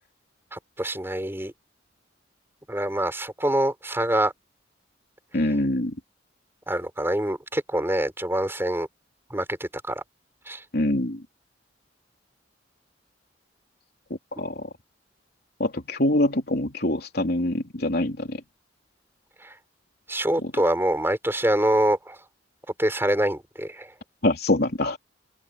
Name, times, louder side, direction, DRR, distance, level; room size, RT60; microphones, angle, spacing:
voice 1, 0.5-1.5 2.7-4.3 6.7-8.9 9.3-10.0 10.5-10.6 19.4-19.5 20.1-22.2 22.8-23.9, right 1 dB, 10° right, 4.9 m, -25 dB
voice 2, 5.3-6.0 10.7-11.2 14.4-14.7 15.6-18.4 20.4-20.5 24.2-25.0, left 1 dB, 55° left, 3.5 m, -24 dB
open air
head